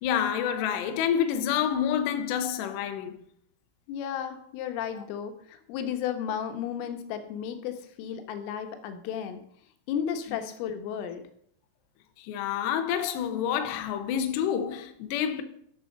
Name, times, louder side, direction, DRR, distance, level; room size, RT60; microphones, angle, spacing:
voice 1, 0.0-3.2 12.2-15.4, left 9 dB, 70° left, 2.9 m, -28 dB
voice 2, 3.9-9.4 9.9-11.2, left 8 dB, 90° left, 3.7 m, -33 dB
12.5 x 6.8 x 5.3 m
omnidirectional pair, 5.7 m